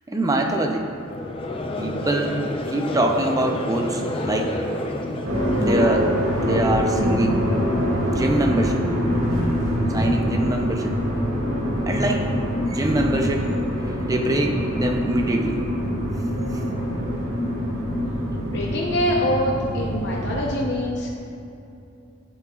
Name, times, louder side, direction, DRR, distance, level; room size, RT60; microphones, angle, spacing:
voice 1, 0.1-0.9 1.8-2.4 2.7-4.5 5.6-7.4 8.1-8.8 9.9-11.0 11.9-12.3 12.6-13.5 13.9-15.6, right 1 dB, 15° right, 3 dB, 0.5 m, -24 dB
Conversation / Crowd, 1.0-6.3, left 1 dB, 25° left, 0.6 m, -30 dB
sound 1, 5.2-20.6, equal, 80° right, 1.5 m, -24 dB
voice 2, 18.4-21.1, left 1 dB, 55° left, -3 dB, 0.8 m, -24 dB
9.6 x 8.8 x 2.4 m, 2.7 s
head